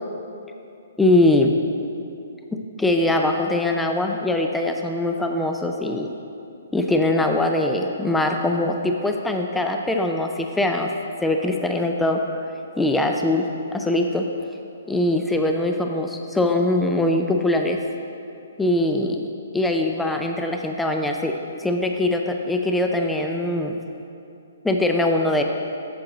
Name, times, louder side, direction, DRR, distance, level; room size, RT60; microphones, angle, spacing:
voice 1, 1.0-1.6 2.5-6.1 6.7-10.9 11.2-12.2 12.8-14.2 14.9-17.8 18.6-19.2 19.5-21.3 21.6-23.8 24.6-25.4, left 1 dB, 5° left, 3 dB, 0.3 m, -22 dB
7.6 x 7.4 x 3.8 m, 2.7 s
hypercardioid pair, 150°, 0 cm